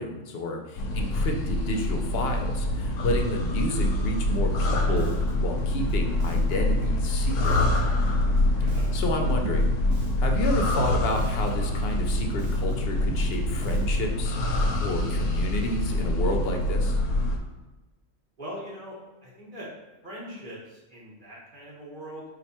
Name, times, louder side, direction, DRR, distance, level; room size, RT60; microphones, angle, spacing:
voice 1, 0.0-7.6 8.9-9.7 10.2-14.4 14.8-17.0, left 1 dB, 60° left, 2 dB, 0.8 m, -31 dB
sound 1, 0.8-17.4, left 1 dB, 85° left, 1.0 m, -25 dB
Bass guitar, 4.3-14.2, equal, 65° right, 0.9 m, -39 dB
voice 2, 8.6-8.9 18.4-18.9 19.2-19.7 20.0-22.2, equal, 40° right, -5 dB, 1.3 m, -41 dB
4.3 x 2.5 x 4.2 m, 1.1 s
omnidirectional pair, 1.3 m